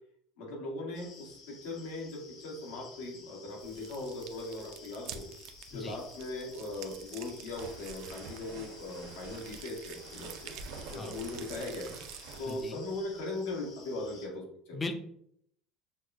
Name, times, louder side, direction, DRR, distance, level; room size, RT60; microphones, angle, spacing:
voice 1, 0.4-5.3 5.7-10.5 10.9-14.8, left 2 dB, 90° left, -1 dB, 1.4 m, -39 dB
sound 1, 0.9-14.3, left 4 dB, 55° left, 0.8 m, -53 dB
sound 2, 3.6-12.6, right 9 dB, 60° right, 0.4 m, -49 dB
sound 3, 7.3-13.2, right 4 dB, 85° right, 0.9 m, -49 dB
voice 2, 12.5-12.8 14.7-14.9, left 3 dB, 20° left, 7 dB, 0.4 m, -38 dB
6.3 x 2.2 x 2.5 m, 0.69 s
cardioid pair, 150°, 0 cm